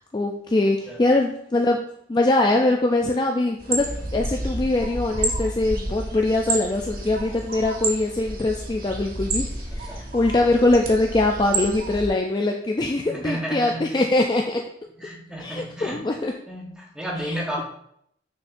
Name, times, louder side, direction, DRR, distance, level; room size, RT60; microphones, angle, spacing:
voice 1, 0.0-1.8 2.1-14.6 15.4-16.3 17.3-17.6, left 2 dB, 25° left, 2 dB, 0.3 m, -22 dB
sound 1, 3.6-12.1, right 2 dB, 50° right, 1.0 m, -30 dB
voice 2, 9.7-10.1 12.9-14.1 15.0-16.0 16.5-17.6, equal, 5° right, -3 dB, 1.2 m, -33 dB
6.2 x 6.1 x 2.6 m, 0.71 s
head